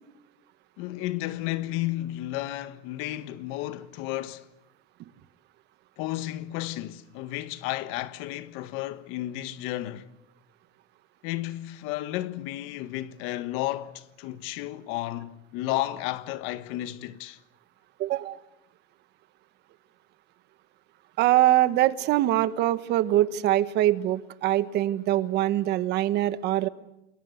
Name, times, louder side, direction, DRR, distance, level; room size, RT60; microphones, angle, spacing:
voice 1, 0.8-4.5 6.0-10.1 11.2-17.4, left 15 dB, 75° left, 1.5 m, -32 dB
voice 2, 18.0-18.4 21.2-26.7, right 14 dB, 55° right, 1.3 m, -23 dB
28.5 x 22.0 x 8.1 m
cardioid pair, 155°, 21 cm